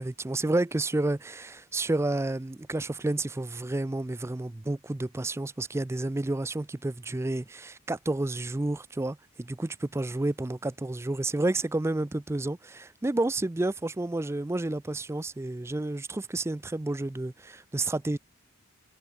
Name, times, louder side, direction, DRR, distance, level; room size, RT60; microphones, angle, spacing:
voice 1, 0.0-18.2, right 2 dB, 10° right, 0.3 m, -30 dB
head